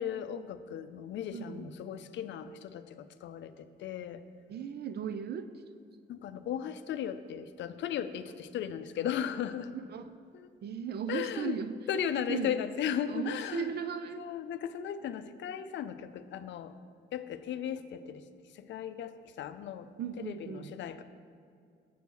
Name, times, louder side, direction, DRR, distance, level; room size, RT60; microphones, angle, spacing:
voice 1, 0.0-4.2 6.1-9.7 10.3-10.5 11.1-11.6 11.9-13.7 14.2-16.7 17.1-18.2 18.5-19.9 20.2-21.0, left 9 dB, 65° left, 11 dB, 0.5 m, -36 dB
voice 2, 1.3-1.7 4.5-5.5 9.7-10.2 10.6-12.0 12.3-12.5 13.1-14.3 20.0-20.7, right 7 dB, 55° right, 11 dB, 0.5 m, -37 dB
7.6 x 4.6 x 6.8 m, 2.3 s
cardioid pair, 90°, 20 cm